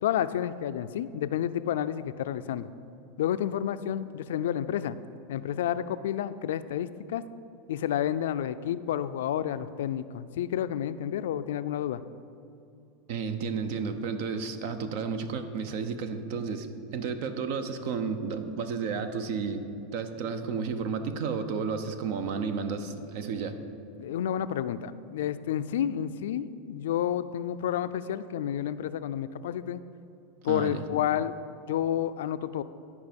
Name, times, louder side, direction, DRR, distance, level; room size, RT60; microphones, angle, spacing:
voice 1, 0.0-2.7 3.2-5.0 5.3-7.2 7.7-12.0 24.0-29.8 30.4-31.4 31.7-32.6, left 10 dB, 85° left, 13 dB, 0.3 m, -30 dB
voice 2, 13.1-16.7 16.9-19.6 19.9-23.6 30.5-30.8, right 5 dB, 65° right, 9 dB, 0.7 m, -32 dB
11.5 x 4.8 x 5.2 m, 2.7 s
supercardioid pair, 120°, 0 cm